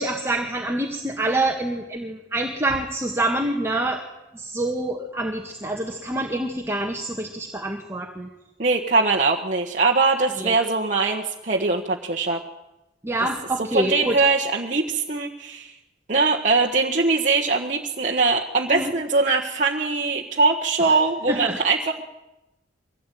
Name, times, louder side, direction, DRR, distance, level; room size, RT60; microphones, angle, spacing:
voice 1, 0.0-4.0 4.3-8.3 10.4-10.5 13.0-14.3 18.7-18.9 21.3-21.6, right 1 dB, 15° right, 1 dB, 1.9 m, -26 dB
voice 2, 8.6-12.4 13.7-15.7 16.1-22.0, right 3 dB, 40° right, 0 dB, 1.5 m, -22 dB
23.5 x 17.5 x 9.3 m, 0.97 s
head